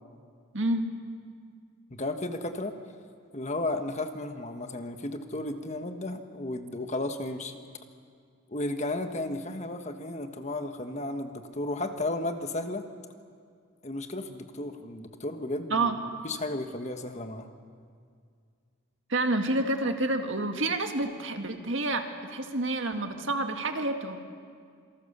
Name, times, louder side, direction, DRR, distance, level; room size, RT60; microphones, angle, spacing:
voice 1, 0.5-0.9 15.7-16.0 19.1-22.0 22.3-24.2, right 2 dB, 65° right, 5 dB, 1.9 m, -28 dB
voice 2, 1.9-2.7 3.3-7.6 8.5-12.9 13.8-15.9 16.2-17.5, left 2 dB, 35° left, 7 dB, 1.4 m, -34 dB
27.0 x 23.5 x 6.9 m, 2.1 s
head